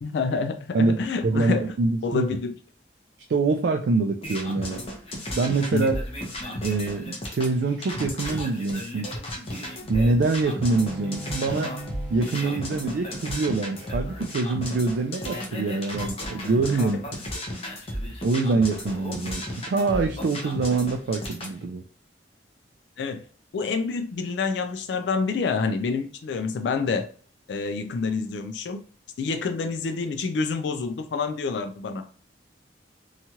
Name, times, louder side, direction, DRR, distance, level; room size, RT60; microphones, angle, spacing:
voice 1, 0.0-1.7 2.0-2.5 5.7-5.9 23.0-23.2 23.5-27.1 27.5-28.8 29.2-32.0, left 4 dB, 75° left, 7 dB, 0.4 m, -27 dB
voice 2, 0.7-2.3 3.3-4.8 5.4-6.0 6.6-9.1 9.9-11.8 12.1-17.0 17.3-17.4 18.2-21.8, right 3 dB, 65° right, 3 dB, 0.3 m, -25 dB
sound 1, 4.2-21.6, left 1 dB, 35° left, 0.7 m, -34 dB
Bowed string instrument, 10.6-16.0, right 1 dB, 5° right, 0.5 m, -42 dB
2.9 x 2.3 x 2.8 m, 0.43 s
head